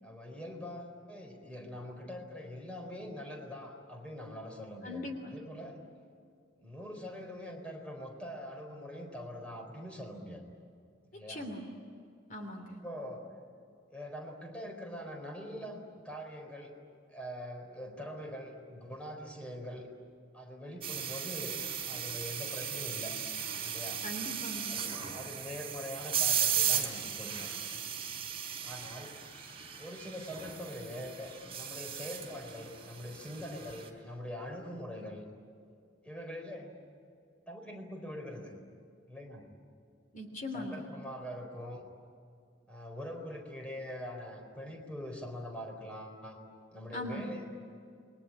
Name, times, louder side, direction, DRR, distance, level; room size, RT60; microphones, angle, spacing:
voice 1, 0.0-5.8 6.6-10.4 11.1-11.4 12.8-13.3 13.9-16.7 17.1-19.9 20.3-21.6 21.8-23.2 23.7-24.0 24.7-27.5 28.6-29.2 29.8-35.2 36.0-36.8 37.5-38.5 39.1-39.5 40.5-41.8 42.7-46.4 46.7-47.5, equal, 5° left, 1 dB, 4.3 m, -43 dB
voice 2, 4.8-5.3 11.1-11.6 12.3-12.8 24.0-24.8 40.1-40.9 46.9-47.4, left 1 dB, 40° left, 4 dB, 3.1 m, -40 dB
sound 1, 20.8-33.9, right 8 dB, 30° right, 4.3 m, -36 dB
29.0 x 22.5 x 8.8 m, 2.4 s
head